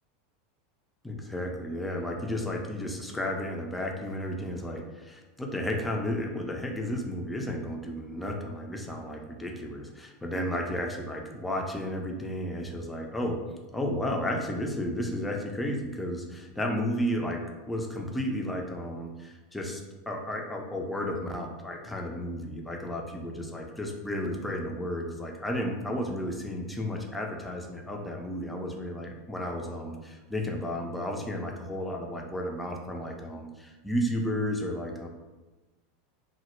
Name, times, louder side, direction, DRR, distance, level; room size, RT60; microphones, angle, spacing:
voice 1, 1.0-13.4 13.7-35.1, left 1 dB, 10° left, 1 dB, 0.4 m, -33 dB
2.1 x 2.0 x 3.0 m, 1.2 s
figure-of-eight pair, 85°, 0 cm